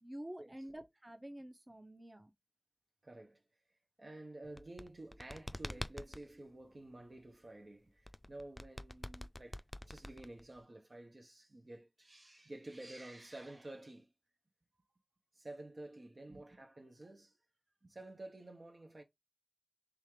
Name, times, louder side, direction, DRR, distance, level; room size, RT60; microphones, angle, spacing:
voice 1, 0.0-2.3 16.3-16.4 17.8-17.9, right 1 dB, 45° right, 0.8 m, -49 dB
voice 2, 3.0-3.4 4.0-14.1 15.3-17.4 17.9-19.0, right 1 dB, 85° right, 0.8 m, -51 dB
sound 1, 4.4-6.2 8.0-10.6, left 1 dB, 30° left, 0.3 m, -46 dB
3.6 x 3.4 x 3.1 m
wide cardioid pair, 40°, 0 cm